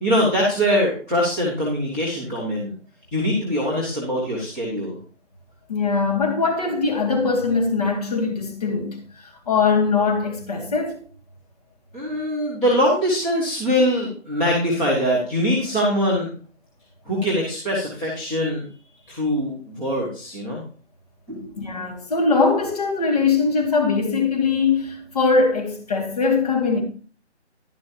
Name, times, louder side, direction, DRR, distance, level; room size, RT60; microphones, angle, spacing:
voice 1, 0.0-2.7 3.1-5.0 11.9-16.3 17.0-18.6 19.1-20.6 21.3-21.6, equal, 5° left, 1.3 m, -22 dB
voice 2, 5.7-9.0 9.5-11.0 21.6-26.8, left 4 dB, 35° left, 2.2 m, -21 dB
11.5 x 10.5 x 2.8 m
figure-of-eight pair, 170°, 35 cm